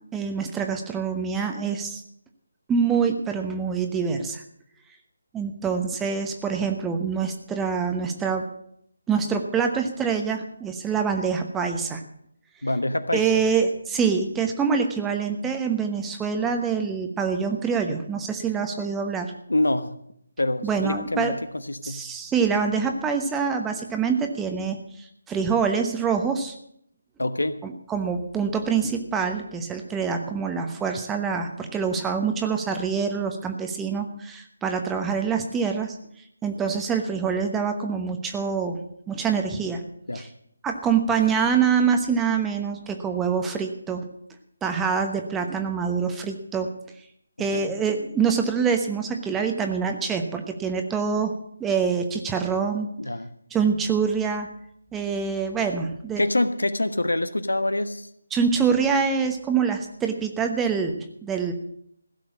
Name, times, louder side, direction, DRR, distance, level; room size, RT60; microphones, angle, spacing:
voice 1, 0.1-2.0 2.7-4.4 5.3-8.5 9.1-12.0 13.1-19.3 20.6-21.3 21.8-24.8 25.3-26.5 27.6-35.9 36.4-38.8 39.1-39.8 40.1-40.3 40.6-44.1 44.6-46.7 47.4-51.3 51.6-52.9 53.5-54.5 54.9-56.2 58.3-61.5, right 6 dB, 10° right, 5 dB, 1.1 m, -25 dB
voice 2, 12.6-13.4 19.5-20.0 20.4-21.4 21.7-22.0 27.2-27.6 40.1-40.2 47.5-47.7 53.0-53.3 56.2-58.1, left 1 dB, 75° left, 12 dB, 1.2 m, -25 dB
16.0 x 6.8 x 8.4 m, 0.71 s
figure-of-eight pair, 150°, 0 cm